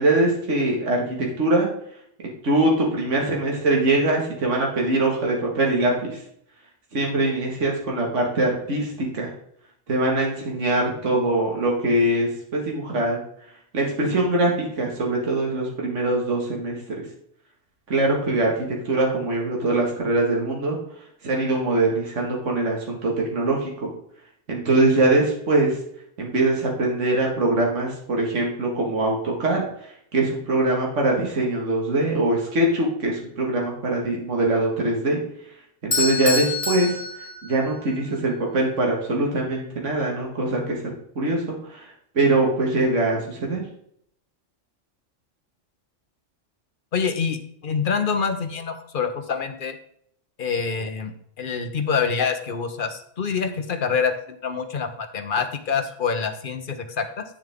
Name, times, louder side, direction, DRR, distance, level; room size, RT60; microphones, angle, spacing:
voice 1, 0.0-1.7 2.4-6.2 6.9-9.3 9.9-13.2 13.7-17.1 17.9-20.8 21.2-23.9 24.5-25.8 26.2-29.6 30.1-35.2 35.8-41.9 42.1-43.6, right 2 dB, 70° right, -1 dB, 2.2 m, -23 dB
Bell / Doorbell, 35.9-38.0, left 3 dB, 30° left, 1.4 m, -27 dB
voice 2, 46.9-49.8 50.4-51.1 51.4-57.2, left 6 dB, 45° left, 7 dB, 1.0 m, -26 dB
8.8 x 7.2 x 3.6 m, 0.69 s
omnidirectional pair, 1.3 m